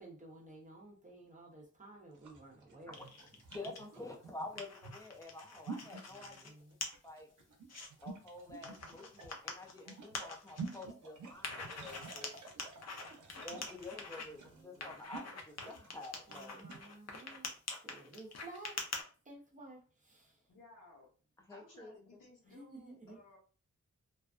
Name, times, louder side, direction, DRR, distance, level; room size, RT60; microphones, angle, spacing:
voice 1, 0.0-3.1 6.1-6.8 12.3-12.5 13.1-13.4 14.4-15.0 16.3-17.5 17.8-18.8 19.2-20.4 22.5-23.2, right 2 dB, 25° right, 0.7 m, -54 dB
sound 1, 2.1-16.9, right 4 dB, 70° right, 0.6 m, -50 dB
sound 2, 2.9-3.8 4.2-6.5 6.8-6.9 7.4-7.9 8.6-10.8 11.4-14.2 14.8-19.0, left 4 dB, 55° left, 0.6 m, -45 dB
voice 2, 3.5-6.6 7.0-7.3 8.0-12.3 13.4-16.6 21.4-21.9, left 2 dB, 10° left, 0.4 m, -49 dB
voice 3, 20.5-21.1 21.5-23.4, left 2 dB, 85° left, 1.0 m, -59 dB
2.4 x 2.3 x 2.4 m
wide cardioid pair, 155°, 31 cm